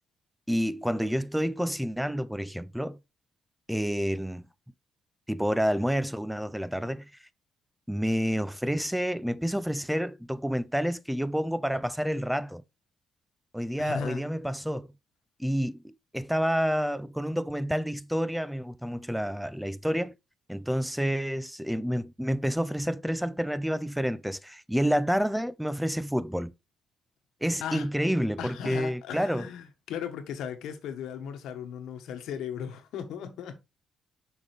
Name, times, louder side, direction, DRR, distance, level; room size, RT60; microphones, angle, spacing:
voice 1, 0.5-3.0 3.7-4.5 5.3-7.1 7.9-12.6 13.5-14.9 15.4-20.1 20.5-26.5 27.4-29.5, equal, 5° right, 0.4 m, -29 dB
voice 2, 13.8-14.2 27.6-27.9 28.4-33.6, left 8 dB, 85° left, 1.3 m, -36 dB
6.3 x 5.2 x 3.3 m
cardioid pair, 90°, 0 cm